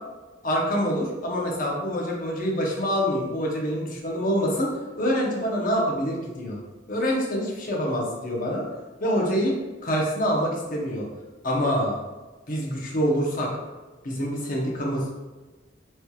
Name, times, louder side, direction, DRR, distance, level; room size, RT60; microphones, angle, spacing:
voice 1, 0.4-4.7 5.0-6.6 6.9-8.6 9.0-9.5 9.8-11.1 11.4-12.0 12.5-13.5 14.0-15.1, equal, 50° left, -2 dB, 0.8 m, -26 dB
4.3 x 3.1 x 2.3 m, 1.2 s
head